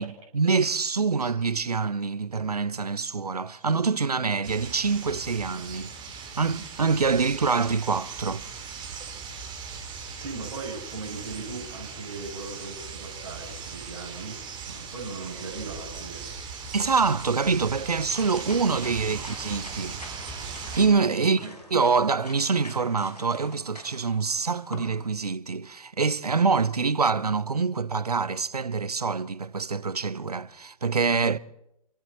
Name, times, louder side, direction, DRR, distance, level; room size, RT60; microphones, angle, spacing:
voice 1, 0.0-5.9 6.3-8.5 16.7-20.0 20.8-21.5 21.7-31.4, right 4 dB, 80° right, 0.8 m, -25 dB
sound 1, 4.4-20.9, right 5 dB, 25° right, 3.9 m, -39 dB
voice 2, 10.2-14.4 14.6-16.4 21.2-21.5, right 3 dB, 50° right, 7.6 m, -38 dB
sound 2, 17.5-25.0, left 1 dB, 90° left, 4.7 m, -46 dB
28.5 x 27.0 x 4.4 m
figure-of-eight pair, 115°, 20 cm